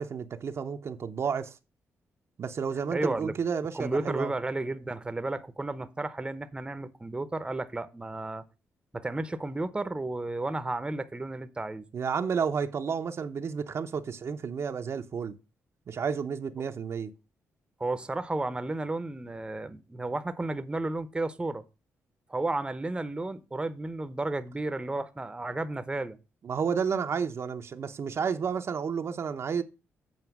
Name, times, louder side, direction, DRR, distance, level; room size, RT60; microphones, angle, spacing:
voice 1, 0.0-1.6 2.4-4.3 11.9-15.3 15.9-17.1 26.4-29.6, right 6 dB, 55° right, 0.8 m, -31 dB
voice 2, 2.9-3.3 3.7-8.4 8.9-11.8 17.8-21.6 22.3-26.2, right 2 dB, 20° right, 0.8 m, -32 dB
8.0 x 4.4 x 7.1 m
cardioid pair, 70°, 5 cm